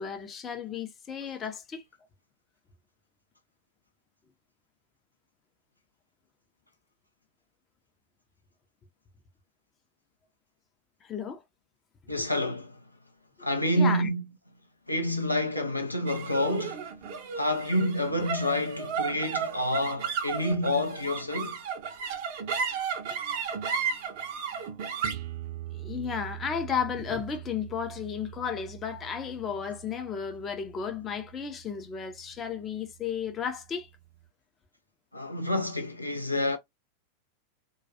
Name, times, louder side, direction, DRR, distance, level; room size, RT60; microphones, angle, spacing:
voice 1, 0.0-1.8 11.0-11.4 13.7-14.1 15.6-15.7 25.7-33.9, left 7 dB, 25° left, 0.5 m, -33 dB
voice 2, 12.1-12.8 13.4-14.2 14.9-16.9 17.3-21.6 35.1-36.6, left 1 dB, 85° left, 0.4 m, -28 dB
sound 1, 16.1-32.6, right 7 dB, 50° right, 0.5 m, -36 dB
2.3 x 2.2 x 2.6 m
figure-of-eight pair, 90°, 0 cm